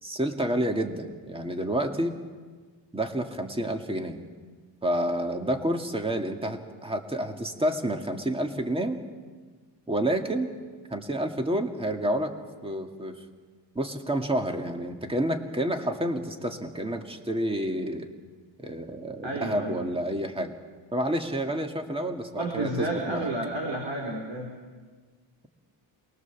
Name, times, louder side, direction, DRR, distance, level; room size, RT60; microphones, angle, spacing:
voice 1, 0.0-2.1 2.9-4.2 4.8-9.0 9.9-10.6 10.9-12.3 12.6-13.2 13.8-18.1 18.6-20.5 20.9-23.3, right 1 dB, 10° right, 4 dB, 2.0 m, -29 dB
voice 2, 19.2-19.8 22.3-24.5, right 2 dB, 70° right, 1 dB, 4.3 m, -31 dB
27.5 x 20.5 x 7.2 m, 1.5 s
wide cardioid pair, 105°, 46 cm